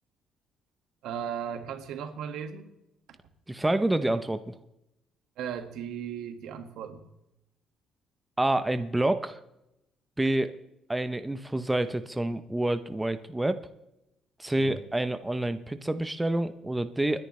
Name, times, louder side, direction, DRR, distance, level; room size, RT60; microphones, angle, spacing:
voice 1, 1.0-2.7 5.4-7.1 14.6-14.8, right 8 dB, 80° right, 6 dB, 1.8 m, -36 dB
voice 2, 3.5-4.5 8.4-9.4 10.2-10.5 10.9-13.6 14.4-17.3, right 1 dB, 10° right, 10 dB, 0.7 m, -28 dB
29.0 x 10.5 x 3.2 m, 0.89 s
cardioid pair, 125°, 0 cm